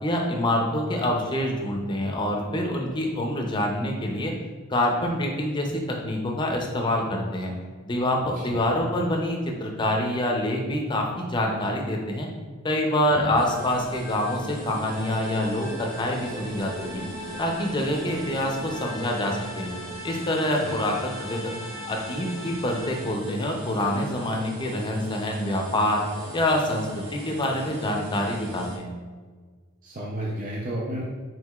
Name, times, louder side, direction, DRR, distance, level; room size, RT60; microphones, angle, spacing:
voice 1, 0.0-4.3 4.7-7.5 7.8-12.3 12.6-17.0 17.4-19.7 20.0-21.5 21.9-26.0 26.3-29.0, left 1 dB, 20° left, 1 dB, 0.5 m, -26 dB
sound 1, 13.2-20.0, left 1 dB, 20° right, 1.0 m, -42 dB
sound 2, 13.4-28.8, right 2 dB, 90° right, 0.6 m, -41 dB
sound 3, 14.8-23.3, equal, 70° right, 1.1 m, -40 dB
voice 2, 29.8-31.0, right 1 dB, 40° right, -4 dB, 0.5 m, -32 dB
4.6 x 3.6 x 2.3 m, 1.5 s
head